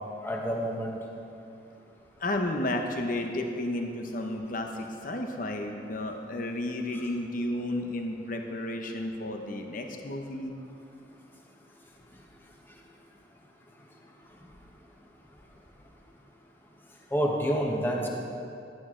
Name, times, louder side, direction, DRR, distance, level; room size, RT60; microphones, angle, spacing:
voice 1, 0.2-1.0 17.1-18.1, equal, 10° left, -1 dB, 1.2 m, -28 dB
voice 2, 2.2-10.5, left 1 dB, 50° left, 3 dB, 0.9 m, -32 dB
16.0 x 11.0 x 3.8 m, 2.6 s
head